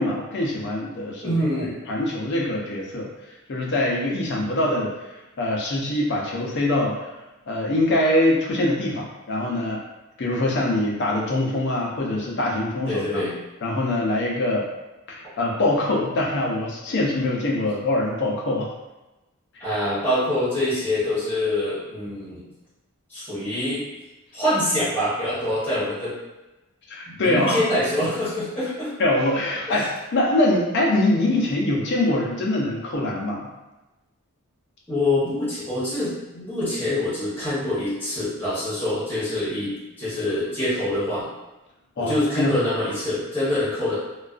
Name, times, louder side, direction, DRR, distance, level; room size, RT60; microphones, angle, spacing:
voice 1, 0.0-1.3 1.9-3.1 3.5-4.9 5.4-7.1 7.5-9.8 10.2-13.2 13.6-14.7 15.1-18.7 19.7-19.8 26.9-27.6 29.0-33.5 42.0-42.5, left 1 dB, 55° left, -2 dB, 0.5 m, -23 dB
voice 2, 1.2-1.7 12.9-13.3 19.6-22.5 23.1-23.8 24.3-26.1 27.1-28.9 29.7-29.9 34.9-41.3 42.0-44.0, left 1 dB, 10° left, -10 dB, 0.8 m, -25 dB
2.3 x 2.2 x 2.3 m, 1.0 s
head